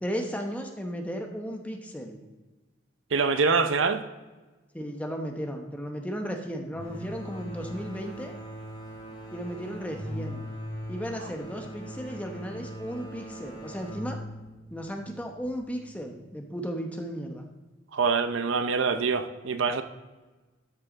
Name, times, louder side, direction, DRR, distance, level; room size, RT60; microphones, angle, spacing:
voice 1, 0.0-2.2 4.7-8.3 9.3-10.4 10.9-14.2 14.7-17.4, equal, 5° left, 3 dB, 0.9 m, -35 dB
voice 2, 3.1-4.0 17.9-19.8, right 5 dB, 80° right, 10 dB, 0.7 m, -25 dB
sound 1, 6.7-16.2, equal, 25° left, 2.2 m, -41 dB
13.0 x 5.6 x 4.0 m, 1.2 s
head